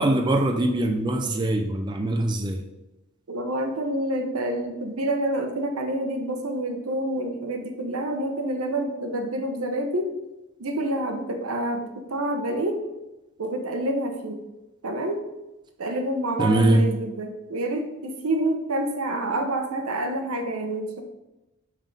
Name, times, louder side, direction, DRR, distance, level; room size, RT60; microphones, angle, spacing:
voice 1, 0.0-2.6 16.4-16.8, right 1 dB, 20° right, 3 dB, 0.4 m, -22 dB
voice 2, 3.3-10.2 10.6-12.8 13.4-14.4 14.8-15.2 15.8-21.0, right 1 dB, 85° right, 5 dB, 0.8 m, -28 dB
5.4 x 3.7 x 5.3 m, 1.0 s
head